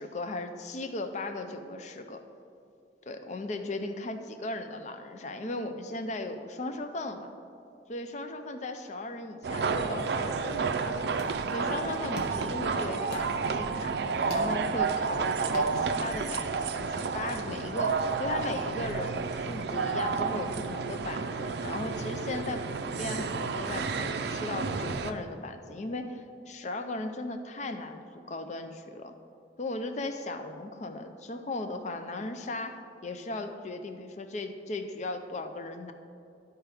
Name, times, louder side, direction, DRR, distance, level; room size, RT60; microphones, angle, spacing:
voice 1, 0.0-2.2 3.1-7.3 7.9-11.0 11.5-13.9 14.3-29.1 29.6-35.9, left 2 dB, 40° left, 7 dB, 0.5 m, -37 dB
sound 1, 9.4-25.1, right 5 dB, 65° right, 0.4 m, -31 dB
sound 2, 10.7-16.3, left 1 dB, 70° left, 1.2 m, -47 dB
12.5 x 4.6 x 3.4 m, 2.5 s
head